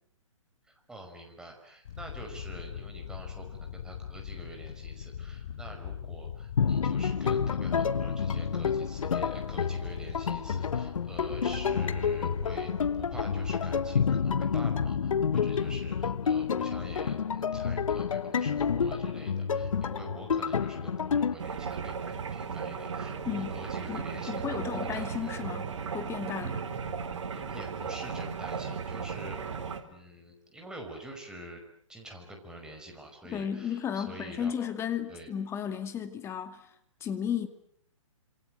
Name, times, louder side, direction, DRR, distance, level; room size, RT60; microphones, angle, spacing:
voice 1, 0.6-12.7 13.0-25.3 27.3-29.4 29.9-31.6 31.9-34.5 35.1-35.3, right 1 dB, 5° right, 5.4 m, -46 dB
sound 1, 1.8-14.0, left 9 dB, 55° left, 4.3 m, -41 dB
sound 2, 6.6-21.3, left 6 dB, 75° left, 1.6 m, -29 dB
sound 3, 21.4-29.8, right 6 dB, 60° right, 4.0 m, -36 dB
voice 2, 23.9-26.6 33.3-36.7 37.0-37.5, left 8 dB, 15° left, 2.4 m, -34 dB
27.5 x 27.5 x 7.8 m
hypercardioid pair, 145°, 17 cm